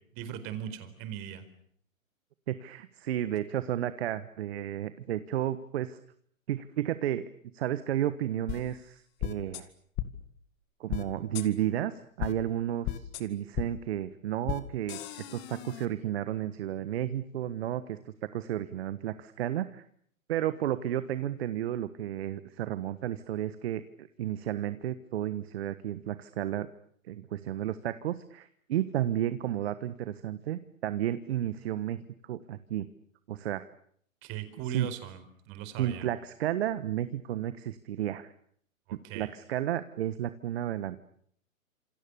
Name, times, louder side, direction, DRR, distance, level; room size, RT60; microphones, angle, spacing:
voice 1, 0.1-1.4 34.2-36.1 38.9-39.3, right 9 dB, 30° right, 10 dB, 4.5 m, -39 dB
voice 2, 2.5-6.0 6.5-7.3 7.5-9.7 10.8-18.0 18.3-19.8 20.3-26.7 27.1-32.9 33.3-33.7 34.6-34.9 35.8-38.3 39.1-41.0, right 11 dB, 50° right, 13 dB, 1.4 m, -32 dB
sound 1, 8.5-8.6 9.2-9.6 10.0-10.1 10.9-11.0 11.3-11.5 12.2-12.3 12.8-13.2 13.5-13.7 14.5-14.6 14.9-15.9, left 14 dB, 25° left, 2.1 m, -34 dB
28.5 x 27.5 x 7.1 m, 0.66 s
figure-of-eight pair, 125°, 41 cm